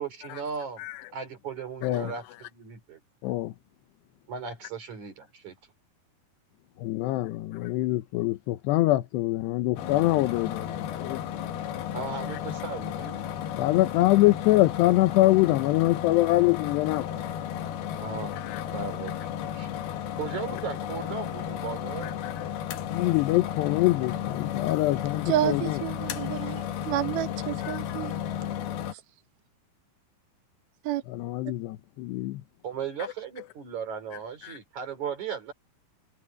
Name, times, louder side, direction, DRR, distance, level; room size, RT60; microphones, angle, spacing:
voice 1, 0.0-0.8 1.1-3.0 4.3-5.6 11.9-13.4 18.0-18.4 18.7-19.9 20.1-22.2 32.6-35.5, right 6 dB, 45° right, 4.8 m, -37 dB
voice 2, 0.8-1.1 1.8-2.1 3.2-3.5 6.8-11.2 12.3-12.4 13.6-17.2 18.4-18.6 20.5-20.6 22.0-22.5 22.9-25.8 27.6-28.2 31.1-32.4 34.4-34.6, left 18 dB, 90° left, 3.1 m, -25 dB
sound 1, 9.8-28.9, left 10 dB, 70° left, 3.3 m, -33 dB
voice 3, 25.3-28.1 30.8-31.0, right 13 dB, 70° right, 3.0 m, -29 dB
omnidirectional pair, 4.7 m